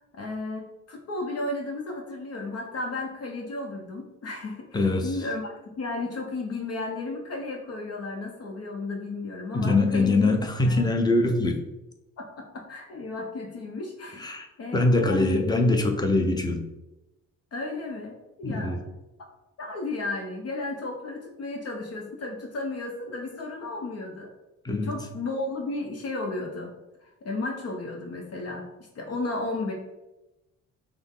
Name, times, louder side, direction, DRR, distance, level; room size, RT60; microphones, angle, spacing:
voice 1, 0.1-10.3 10.6-10.8 12.2-15.4 17.5-18.8 19.2-19.3 19.6-24.3 24.8-26.7 27.0-28.7 28.9-29.7, left 2 dB, 55° left, 1 dB, 0.8 m, -34 dB
voice 2, 4.7-5.1 9.5-11.6 14.2-14.5 14.7-16.7 18.4-18.8 24.6-24.9, left 2 dB, 15° left, 4 dB, 0.7 m, -23 dB
5.9 x 2.1 x 3.7 m, 0.98 s
cardioid pair, 90°, 30 cm